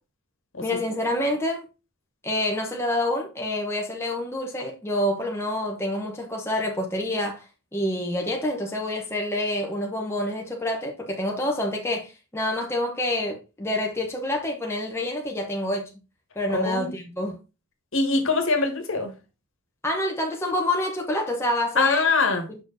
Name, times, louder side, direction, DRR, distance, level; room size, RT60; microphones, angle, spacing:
voice 1, 0.6-1.6 2.2-7.5 7.7-15.9 16.4-17.4 19.8-22.1 22.5-22.6, left 1 dB, 10° left, 1.0 m, -27 dB
voice 2, 16.5-16.9 17.9-19.1 21.8-22.5, left 3 dB, 60° left, 1.5 m, -23 dB
6.5 x 4.5 x 3.9 m
head